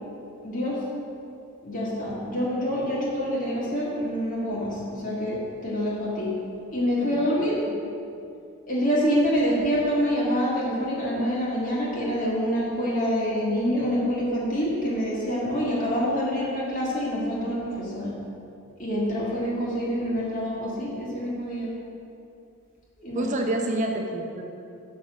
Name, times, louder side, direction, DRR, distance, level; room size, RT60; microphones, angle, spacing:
voice 1, 0.4-0.8 1.6-6.3 6.7-7.6 8.7-18.2 18.8-21.7 23.0-23.3, equal, 35° left, -6 dB, 1.7 m, -26 dB
voice 2, 23.1-24.4, right 1 dB, 35° right, 2 dB, 0.6 m, -28 dB
6.5 x 5.8 x 6.2 m, 2.6 s
head